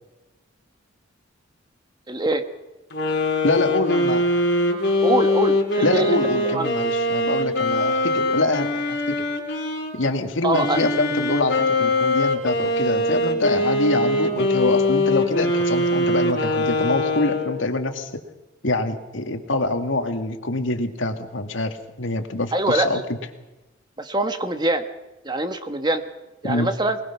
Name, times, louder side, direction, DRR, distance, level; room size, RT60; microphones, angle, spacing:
voice 1, 2.1-2.4 5.0-6.2 6.4-6.7 10.4-10.8 22.5-23.0 24.0-24.8 25.2-26.0 26.4-27.0, right 2 dB, 20° right, 8 dB, 1.2 m, -23 dB
sound 1, 2.9-9.9 10.5-17.7, left 1 dB, 60° left, 3.9 m, -22 dB
voice 2, 3.4-4.2 5.8-9.2 9.9-18.1 18.6-23.0 26.4-26.7, left 2 dB, 75° left, 6 dB, 2.0 m, -25 dB
21.5 x 20.5 x 5.9 m, 1.1 s
head